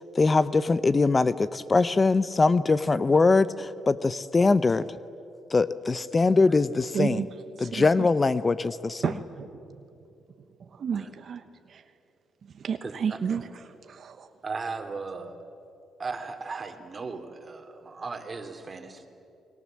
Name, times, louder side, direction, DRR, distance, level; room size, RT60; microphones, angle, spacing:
voice 1, 0.2-4.9 5.5-7.2 7.6-9.1, left 3 dB, 30° left, 15 dB, 0.6 m, -22 dB
voice 2, 6.9-7.3 7.6-7.9 9.0-9.5 10.6-11.4 11.7-11.8 12.5-14.3, right 7 dB, 55° right, 8 dB, 1.1 m, -31 dB
voice 3, 12.8-13.2 14.4-15.4 16.0-19.1, right 4 dB, 35° right, 6 dB, 2.7 m, -37 dB
29.5 x 21.5 x 7.5 m, 2.8 s
cardioid pair, 90°, 0 cm